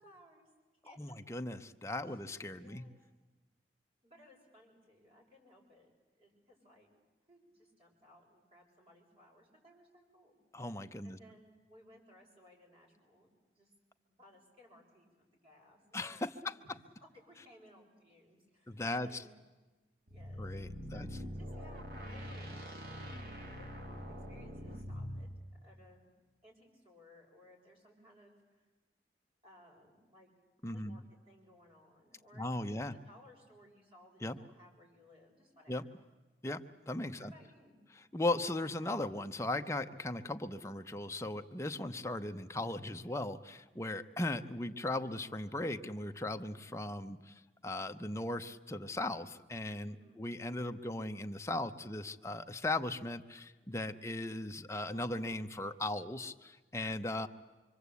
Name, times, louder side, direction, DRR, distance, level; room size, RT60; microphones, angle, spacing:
voice 1, 0.0-1.2 2.0-2.2 2.6-3.0 4.0-6.9 7.3-10.4 11.0-13.7 14.1-16.1 16.4-19.3 20.1-20.6 20.9-22.5 23.5-25.3 25.6-26.1 26.4-28.6 29.4-30.3 30.7-35.9 37.2-37.8 49.9-50.2, left 1 dB, 35° right, -2 dB, 6.7 m, -62 dB
voice 2, 1.0-2.8 10.5-11.2 15.9-16.6 18.7-19.2 20.4-21.1 30.6-31.0 32.4-33.0 34.2-34.4 35.7-35.8 36.4-37.3 38.1-57.3, left 2 dB, 15° left, 6 dB, 0.8 m, -38 dB
sound 1, 20.1-25.3, equal, 55° right, 2.8 m, -44 dB
25.5 x 24.5 x 8.4 m, 1.2 s
head